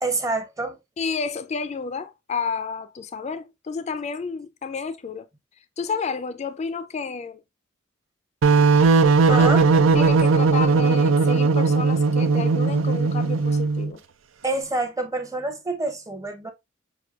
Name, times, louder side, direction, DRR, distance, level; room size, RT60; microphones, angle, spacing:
voice 1, 0.0-0.8 9.3-9.6 14.4-16.5, right 2 dB, 15° right, 0.7 m, -27 dB
voice 2, 1.0-5.3 5.8-7.4 9.3-9.5 9.9-14.0, left 5 dB, 35° left, 0.4 m, -30 dB
sound 1, 8.4-13.9, right 4 dB, 85° right, 0.5 m, -18 dB
5.9 x 2.6 x 2.4 m
head